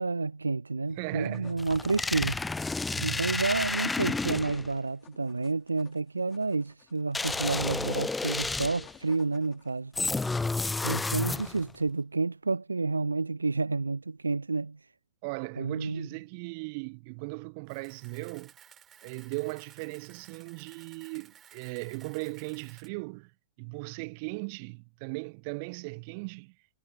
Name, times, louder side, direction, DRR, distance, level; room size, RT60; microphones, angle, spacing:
voice 1, 0.0-2.4 3.0-9.9 10.8-14.8 15.6-16.1, right 3 dB, 80° right, 0.3 m, -30 dB
sound 1, 0.9-10.0, left 10 dB, 30° left, 3.7 m, -59 dB
voice 2, 0.9-1.7 2.9-3.4 15.2-18.5 19.0-23.3 23.6-26.6, right 31 dB, 45° right, 0.8 m, -38 dB
sound 2, 1.6-4.7 7.1-9.0 10.0-11.7, left 3 dB, 10° left, 0.9 m, -31 dB
Camera, 17.7-22.9, right 9 dB, 25° right, 3.6 m, -56 dB
figure-of-eight pair, 90°, 0 cm